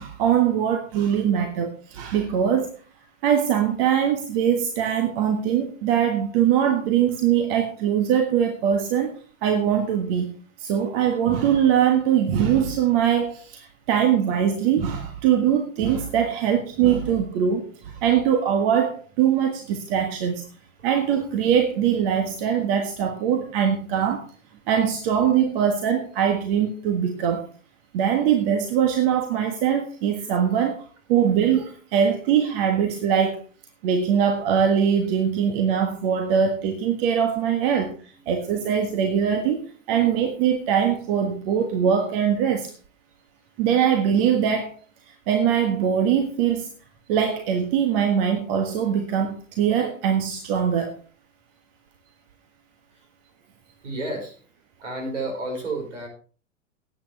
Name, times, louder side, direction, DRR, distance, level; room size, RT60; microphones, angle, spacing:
voice 1, 0.0-2.7 3.2-9.1 9.4-10.3 10.6-20.4 20.8-24.3 24.7-27.4 27.9-30.8 31.1-33.4 33.8-39.6 39.9-42.7 43.6-44.7 45.1-46.7 47.1-51.0, right 8 dB, 45° right, 6 dB, 1.5 m, -22 dB
voice 2, 53.8-54.4 54.8-56.1, right 2 dB, 70° right, 3 dB, 5.2 m, -31 dB
18.0 x 8.9 x 3.4 m, 0.39 s
figure-of-eight pair, 85°, 38 cm